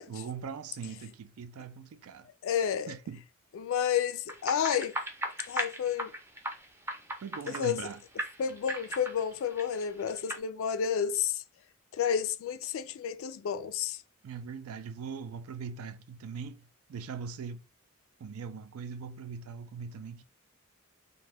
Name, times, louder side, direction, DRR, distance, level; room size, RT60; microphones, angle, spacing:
voice 1, 0.1-2.3 2.9-3.2 7.2-8.0 14.2-17.6 18.2-20.2, right 6 dB, 75° right, 0.4 m, -41 dB
voice 2, 2.4-2.9 3.5-5.0 5.5-6.1 7.5-7.8 8.4-11.4 11.9-14.0, left 8 dB, 65° left, 0.3 m, -30 dB
sound 1, 4.3-7.9 8.2-10.4, right 1 dB, 10° right, 0.5 m, -37 dB
2.5 x 2.3 x 3.4 m
head